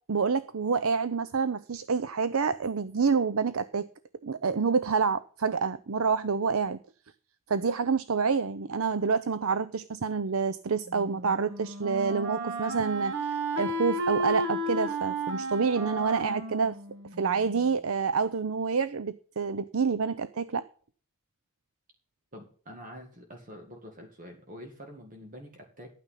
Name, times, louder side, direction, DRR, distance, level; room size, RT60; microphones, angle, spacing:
voice 1, 0.1-3.9 4.2-6.8 7.5-16.8 17.2-20.7, right 5 dB, 75° right, 15 dB, 0.6 m, -28 dB
Wind instrument woodwind instrument, 10.9-17.7, right 1 dB, 55° right, 1.7 m, -33 dB
voice 2, 22.3-25.9, equal, 35° right, 3 dB, 1.8 m, -46 dB
12.5 x 9.1 x 5.6 m, 0.43 s
head